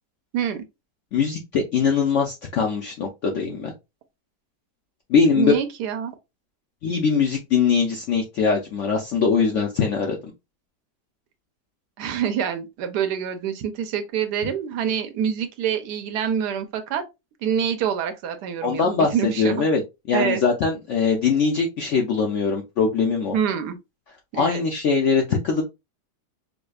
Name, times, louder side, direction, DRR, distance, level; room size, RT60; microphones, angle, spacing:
voice 1, 0.3-0.6 5.4-6.2 12.0-17.0 17.4-19.6 20.1-20.4 23.3-23.8 24.3-24.6, right 8 dB, 80° right, 1.1 m, -26 dB
voice 2, 1.1-3.7 5.1-5.6 6.8-10.2 18.6-19.8 20.1-23.3 24.3-25.7, left 5 dB, 70° left, 0.7 m, -22 dB
4.9 x 2.1 x 2.3 m
omnidirectional pair, 1.8 m